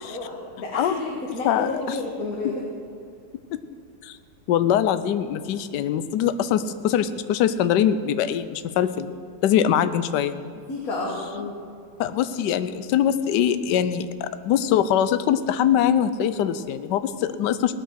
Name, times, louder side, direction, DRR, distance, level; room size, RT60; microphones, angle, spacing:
voice 1, 0.0-2.6 10.7-11.6, left 2 dB, 55° left, -2 dB, 2.0 m, -30 dB
voice 2, 1.4-2.0 2.4-2.5 4.0-4.2 4.5-9.1 9.4-10.4 12.0-17.7, left 9 dB, 80° left, 12 dB, 1.3 m, -23 dB
17.5 x 9.2 x 6.3 m, 2.4 s
omnidirectional pair, 1.9 m